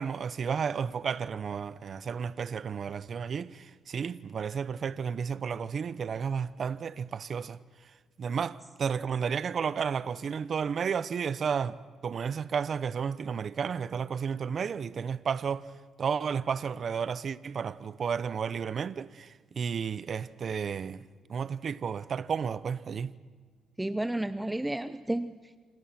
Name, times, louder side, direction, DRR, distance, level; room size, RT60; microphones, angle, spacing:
voice 1, 0.0-7.6 8.2-11.8 12.0-15.7 16.0-21.0 21.3-23.1, right 6 dB, 50° right, 0.8 m, -32 dB
voice 2, 23.8-25.6, right 1 dB, 10° right, 0.7 m, -32 dB
27.5 x 26.5 x 6.0 m
cardioid pair, 90°, 0 cm